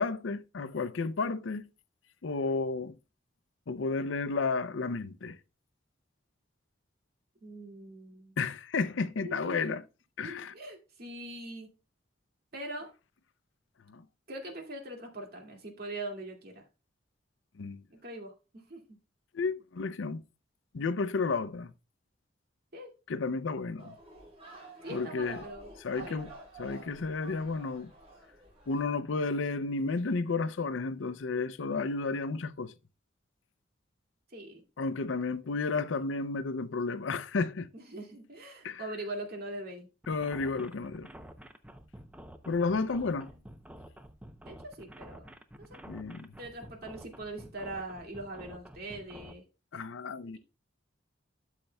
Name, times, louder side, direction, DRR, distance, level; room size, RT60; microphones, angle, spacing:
voice 1, 0.0-1.7 2.2-2.9 3.7-5.4 8.4-9.8 10.2-10.5 13.9-14.0 17.6-17.8 19.3-20.2 20.7-21.7 23.1-23.9 24.9-25.4 25.8-26.3 26.6-27.9 28.7-32.7 34.8-37.7 38.6-38.8 40.1-41.1 42.5-43.3 45.9-46.3 49.7-50.4, left 4 dB, 75° left, 0.5 m, -32 dB
voice 2, 7.4-8.4 9.2-9.8 10.2-11.7 12.5-12.9 14.3-16.7 17.9-18.8 22.7-22.9 24.8-26.2 34.3-34.6 35.2-35.6 37.7-39.9 42.7-42.9 43.3-43.4 44.4-45.3 45.6-45.8 46.4-49.4, right 1 dB, 55° right, 2.2 m, -42 dB
sound 1, 23.8-28.8, right 2 dB, 35° right, 3.8 m, -50 dB
sound 2, 40.0-49.3, equal, 5° right, 0.6 m, -49 dB
13.0 x 6.6 x 2.2 m
head